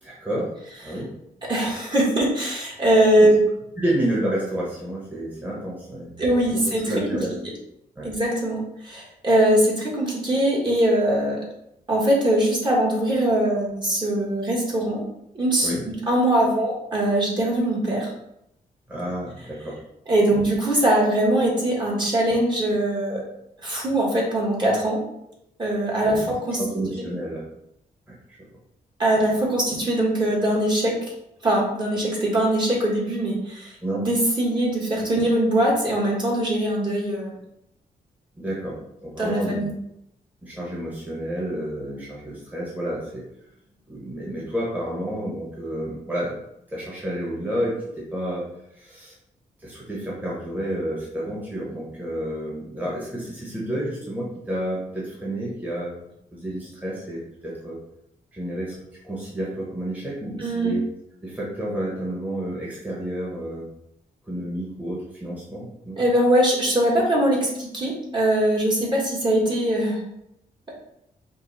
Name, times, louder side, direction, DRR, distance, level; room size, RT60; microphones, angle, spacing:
voice 1, 0.0-0.5 0.8-1.1 3.2-3.3 3.8-7.3 8.0-8.1 15.6-15.8 18.9-19.8 20.3-20.4 26.0-26.3 26.6-27.4 28.1-28.2 33.8-34.1 38.4-39.6 40.4-43.2 43.9-46.3 46.7-48.4 48.7-49.1 49.6-55.9 56.3-57.8 58.3-58.7 59.0-60.8 61.2-63.6 64.3-66.0, right 1 dB, 10° right, -6 dB, 1.3 m, -30 dB
voice 2, 1.5-3.4 6.2-7.2 8.0-11.4 11.9-15.0 15.3-15.7 16.0-18.1 20.1-23.2 23.6-25.0 25.6-26.6 27.0-27.1 29.0-30.9 31.4-37.4 39.2-39.7 60.4-60.7 66.0-70.0 70.7-70.8, right 1 dB, 30° right, -4 dB, 1.6 m, -21 dB
5.3 x 2.4 x 4.1 m, 0.80 s
cardioid pair, 110°, 16 cm